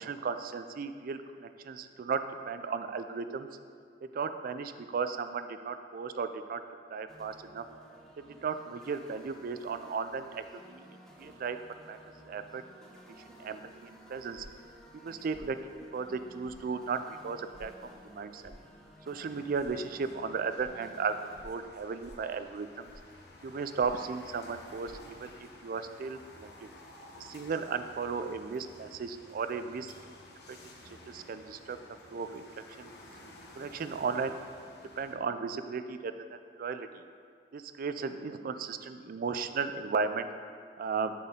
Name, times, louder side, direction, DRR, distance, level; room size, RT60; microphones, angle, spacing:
voice 1, 0.0-3.5 4.1-6.6 6.9-7.6 8.4-10.9 11.2-11.6 11.9-12.0 12.2-12.9 13.3-14.5 15.0-15.6 15.9-18.6 19.1-21.1 21.4-22.9 23.4-24.9 25.2-26.7 27.2-29.9 30.5-30.6 31.1-32.5 32.8-32.9 33.5-34.3 35.0-36.9 37.5-40.3 40.8-41.1, right 5 dB, 55° right, 10 dB, 0.3 m, -35 dB
sound 1, 7.1-21.4, equal, 5° left, 0.8 m, -55 dB
sound 2, 14.3-14.7 15.3-15.5 16.4-16.6 17.5-17.7 18.4-18.6 19.6-19.7 20.5-20.7 21.3-21.6 22.0-22.3 22.8-23.1 23.8-24.1 24.8-24.9, equal, 30° right, 0.7 m, -52 dB
sound 3, 19.2-35.2, left 2 dB, 65° left, 1.0 m, -53 dB
10.0 x 4.2 x 3.6 m, 2.3 s
head